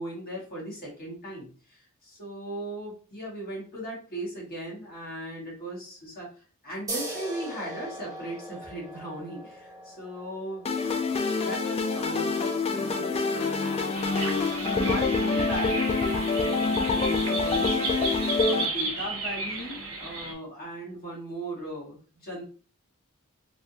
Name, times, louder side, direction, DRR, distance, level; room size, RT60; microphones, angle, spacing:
voice 1, 0.0-6.3 6.6-10.7 11.4-22.4, equal, 45° left, -5 dB, 1.4 m, -38 dB
sound 1, 6.9-14.0, right 1 dB, 15° right, 0.8 m, -41 dB
sound 2, 10.7-18.7, left 3 dB, 25° left, 0.3 m, -26 dB
sound 3, 13.9-20.3, right 2 dB, 65° right, 0.9 m, -33 dB
3.3 x 2.5 x 2.7 m, 0.41 s
head